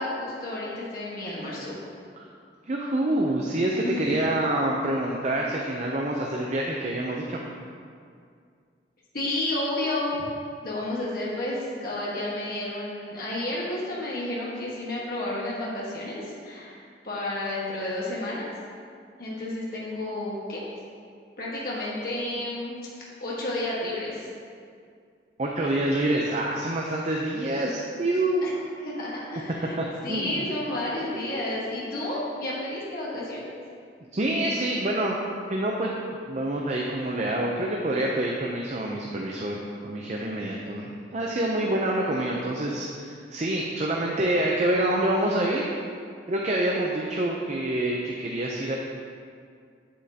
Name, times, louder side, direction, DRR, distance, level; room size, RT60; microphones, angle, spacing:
voice 1, 0.0-1.7 3.8-4.1 9.1-10.2 10.6-18.5 19.2-20.6 21.4-22.8 23.2-24.3 28.4-28.5 28.8-33.5 41.6-41.7, left 1 dB, 55° left, -6 dB, 1.5 m, -31 dB
voice 2, 2.7-7.4 25.4-28.4 29.8-30.4 34.1-35.2 35.5-35.9 36.3-45.6 46.3-48.8, right 1 dB, 40° right, -1 dB, 0.6 m, -27 dB
8.7 x 8.3 x 2.9 m, 2.2 s
head